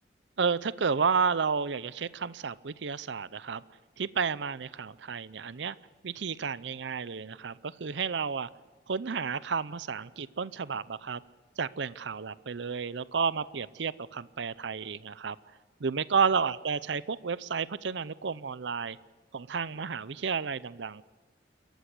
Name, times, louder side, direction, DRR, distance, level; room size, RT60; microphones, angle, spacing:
voice 1, 0.4-3.6 4.0-5.8 6.0-8.5 8.9-11.2 11.6-15.4 15.8-19.0 19.3-21.0, right 5 dB, 70° right, 18 dB, 0.6 m, -31 dB
28.5 x 14.5 x 8.1 m, 1.4 s
head